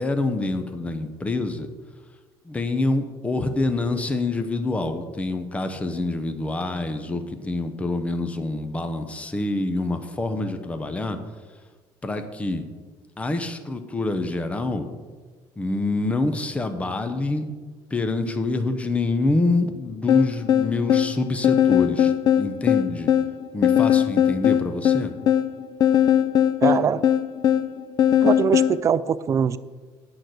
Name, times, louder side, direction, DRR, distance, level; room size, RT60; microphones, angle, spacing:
voice 1, 0.0-1.7 2.4-11.2 12.0-12.6 13.2-14.9 15.6-17.5 17.9-23.1 23.5-25.1, left 2 dB, 15° left, 7 dB, 0.9 m, -26 dB
sound 1, 20.1-28.8, left 10 dB, 45° left, 0.6 m, -20 dB
voice 2, 26.6-27.0 28.2-29.6, right 7 dB, 30° right, 15 dB, 0.4 m, -22 dB
9.1 x 5.9 x 7.9 m, 1.4 s
cardioid pair, 135°, 10 cm